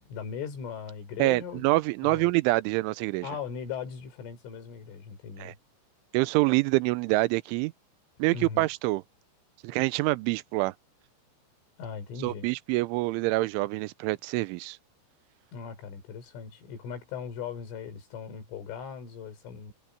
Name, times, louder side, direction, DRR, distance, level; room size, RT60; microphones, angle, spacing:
voice 1, 0.0-2.3 3.2-5.6 8.3-8.7 11.8-12.5 15.5-19.7, left 6 dB, 70° left, 7.0 m, -39 dB
voice 2, 1.2-3.3 5.4-5.5 6.1-7.7 8.2-9.0 9.6-10.7 12.2-14.8, right 21 dB, 80° right, 2.9 m, -26 dB
omnidirectional pair, 5.9 m